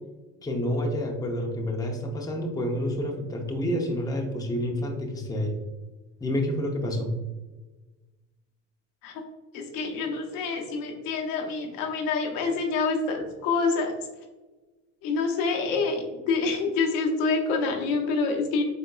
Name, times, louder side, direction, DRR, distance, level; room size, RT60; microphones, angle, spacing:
voice 1, 0.4-5.6 6.2-7.1, equal, 10° left, 1 dB, 0.7 m, -29 dB
voice 2, 9.5-13.9 15.0-18.6, left 4 dB, 75° left, 2 dB, 0.9 m, -27 dB
4.0 x 3.6 x 2.3 m, 1.2 s
supercardioid pair, 90°, 34 cm